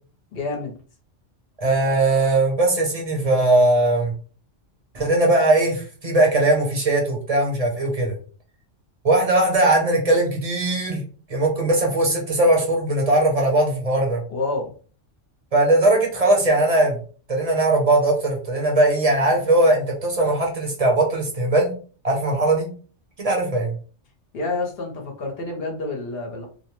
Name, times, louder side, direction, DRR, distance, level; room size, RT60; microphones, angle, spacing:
voice 1, 0.3-0.7 14.3-14.7 24.3-26.5, left 3 dB, 60° left, 1 dB, 0.9 m, -28 dB
voice 2, 1.6-4.1 4.9-8.1 9.0-11.0 11.3-14.2 15.5-17.0 17.3-21.7 22.0-22.7 23.2-23.8, right 2 dB, 35° right, 0 dB, 0.7 m, -19 dB
2.6 x 2.0 x 2.9 m, 0.40 s
omnidirectional pair, 1.3 m